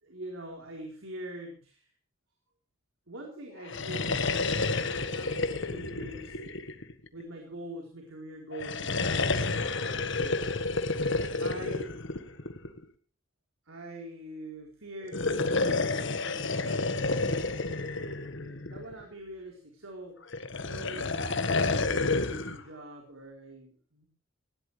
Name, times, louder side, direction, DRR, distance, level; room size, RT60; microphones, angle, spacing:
voice 1, 0.0-1.9 3.1-6.5 7.1-10.7 11.4-11.9 13.6-16.9 18.4-20.2 20.6-24.1, right 1 dB, 90° right, 0 dB, 4.2 m, -44 dB
sound 1, 3.6-7.2 8.5-12.8 15.0-19.0 20.3-22.6, left 3 dB, 65° left, 1.6 m, -30 dB
19.5 x 17.5 x 3.4 m, 0.38 s
head